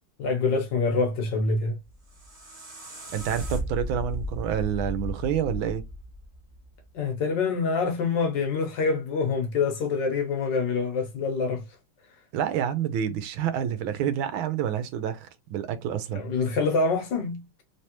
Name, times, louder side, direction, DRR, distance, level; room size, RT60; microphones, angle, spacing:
voice 1, 0.2-1.8 6.9-11.6 16.1-17.6, left 4 dB, 65° left, 1.4 m, -26 dB
sound 1, 1.8-6.9, left 1 dB, 25° right, 1.6 m, -35 dB
voice 2, 3.1-5.8 12.3-16.2, right 9 dB, 75° right, 1.4 m, -28 dB
3.3 x 3.3 x 2.8 m
omnidirectional pair, 2.3 m